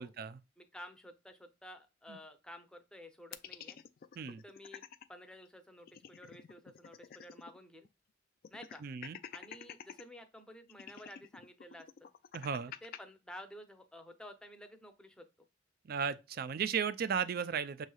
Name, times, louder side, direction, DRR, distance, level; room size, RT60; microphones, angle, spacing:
voice 1, 0.0-0.4 4.2-4.4 8.8-9.2 12.3-12.7 15.9-17.9, right 6 dB, 50° right, 0.4 m, -35 dB
voice 2, 0.6-3.8 4.2-7.9 8.5-8.8 9.3-12.1 12.8-15.5, left 1 dB, 5° left, 0.6 m, -52 dB
sound 1, 3.3-5.1 5.4-5.5 5.8-7.6 7.8-7.9 8.4-10.0 10.7-13.0, left 8 dB, 50° left, 0.3 m, -49 dB
6.3 x 3.2 x 2.3 m
head